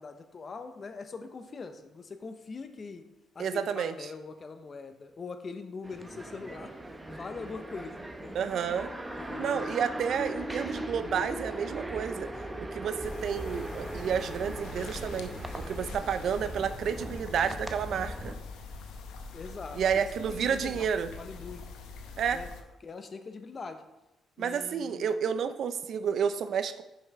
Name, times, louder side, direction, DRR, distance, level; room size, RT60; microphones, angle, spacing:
voice 1, 0.0-3.0 3.3-6.7 7.1-8.4 9.1-9.8 19.3-21.7 22.3-22.5 22.8-23.8 24.4-25.2, left 4 dB, 40° left, 8 dB, 0.7 m, -42 dB
voice 2, 3.4-4.1 8.3-8.9 9.4-12.3 12.6-15.3 15.6-18.3 19.7-21.1 22.2-22.4 24.4-26.8, right 7 dB, 65° right, 11 dB, 0.4 m, -30 dB
sound 1, 5.8-18.4, right 1 dB, 15° right, 0.7 m, -39 dB
sound 2, 13.0-22.6, left 4 dB, 90° left, 0.8 m, -43 dB
5.6 x 5.6 x 4.7 m, 0.97 s
cardioid pair, 90°, 0 cm